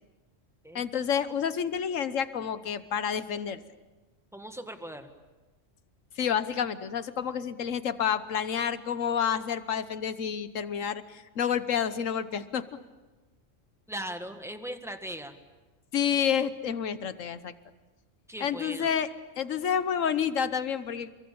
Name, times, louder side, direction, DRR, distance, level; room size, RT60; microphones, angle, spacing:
voice 1, 0.7-3.6 6.2-12.6 15.9-17.5 18.4-19.1 19.4-21.1, left 8 dB, 85° left, 13 dB, 1.5 m, -29 dB
voice 2, 4.3-5.1 13.9-15.4 18.3-19.0, right 1 dB, ahead, 6 dB, 1.8 m, -39 dB
28.0 x 22.5 x 8.7 m, 1.2 s
omnidirectional pair, 1.3 m